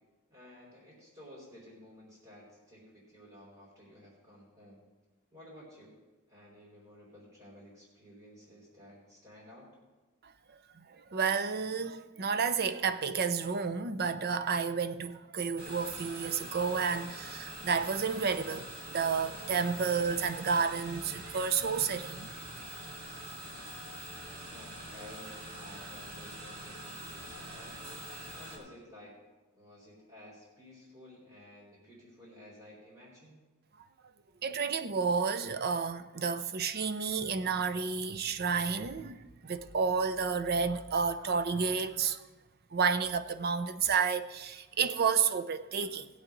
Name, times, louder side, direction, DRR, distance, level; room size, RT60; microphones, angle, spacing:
voice 1, 0.3-4.8 5.3-5.9 6.3-9.7 24.5-27.9 28.3-29.2 29.5-33.4, left 1 dB, 25° right, 4.4 m, -53 dB
voice 2, 11.1-22.3 34.4-42.2 42.7-46.1, right 5 dB, 45° right, 0.6 m, -31 dB
sound 1, 15.6-28.6, right 1 dB, 75° right, 2.8 m, -44 dB
19.0 x 8.2 x 3.9 m
head